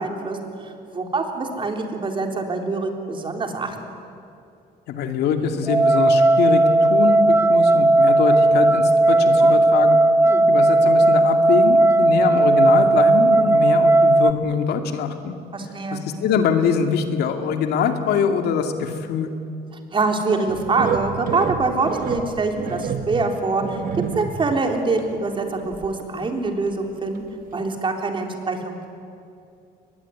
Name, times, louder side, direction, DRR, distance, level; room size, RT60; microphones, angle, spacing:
voice 1, 0.0-4.1 10.3-10.4 15.5-16.0 19.9-23.8 24.1-27.3 27.5-28.9, right 3 dB, 30° right, 3 dB, 3.7 m, -25 dB
voice 2, 4.9-10.0 10.5-15.3 15.9-19.3, left 6 dB, 75° left, 6 dB, 2.3 m, -23 dB
sound 1, 5.6-14.3, right 2 dB, 15° right, 0.6 m, -16 dB
sound 2, 20.5-24.6 25.0-25.1 25.6-26.3 26.7-26.8 27.2-27.3, right 6 dB, 55° right, 1.9 m, -29 dB
23.0 x 21.0 x 9.7 m, 2.6 s
cardioid pair, 110°, 17 cm